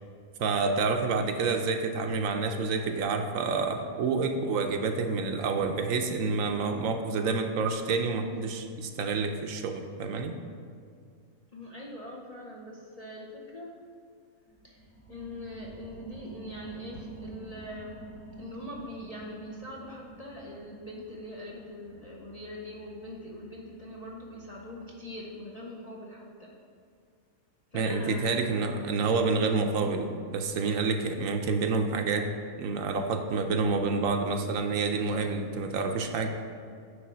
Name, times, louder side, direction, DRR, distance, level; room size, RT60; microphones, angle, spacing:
voice 1, 0.4-10.4 27.7-36.3, right 4 dB, 75° right, 5 dB, 0.9 m, -28 dB
voice 2, 11.5-13.8 14.6-18.0 18.4-26.5 27.7-28.5, left 1 dB, 40° left, -4 dB, 0.6 m, -42 dB
sound 1, 14.5-25.6 26.1-26.2, right 3 dB, 10° right, 0.7 m, -48 dB
9.5 x 3.3 x 6.0 m, 2.2 s
omnidirectional pair, 1.5 m